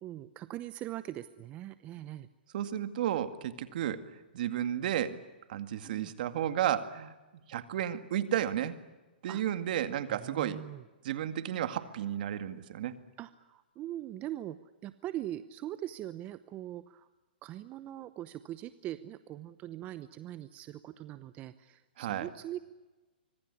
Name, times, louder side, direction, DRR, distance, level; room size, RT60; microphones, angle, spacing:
voice 1, 0.0-2.3 5.8-6.1 9.3-9.4 10.1-10.8 13.2-14.6 14.8-17.1 17.4-22.6, right 13 dB, 25° right, 13 dB, 0.8 m, -41 dB
voice 2, 2.5-5.2 5.5-7.1 7.5-8.8 9.2-10.6 11.0-12.9 22.0-22.3, right 11 dB, 55° right, 10 dB, 2.1 m, -33 dB
25.0 x 22.0 x 9.9 m, 1.2 s
hypercardioid pair, 140°, 6 cm